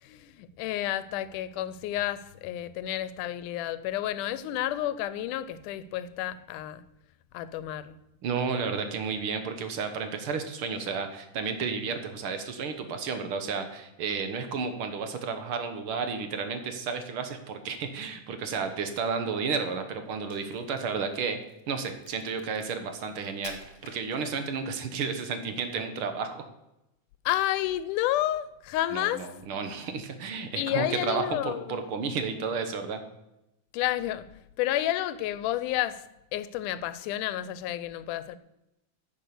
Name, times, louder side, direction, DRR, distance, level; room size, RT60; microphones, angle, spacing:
voice 1, 0.0-6.8 7.3-8.0 27.3-29.3 30.6-31.8 33.7-34.3 34.6-36.1 36.3-38.4, left 13 dB, 85° left, 2.1 m, -30 dB
voice 2, 8.2-21.4 21.7-26.4 28.9-33.0, right 5 dB, 60° right, 1.5 m, -32 dB
Crack, 20.1-24.7, left 4 dB, 50° left, 2.4 m, -51 dB
10.0 x 7.2 x 6.7 m
omnidirectional pair, 3.5 m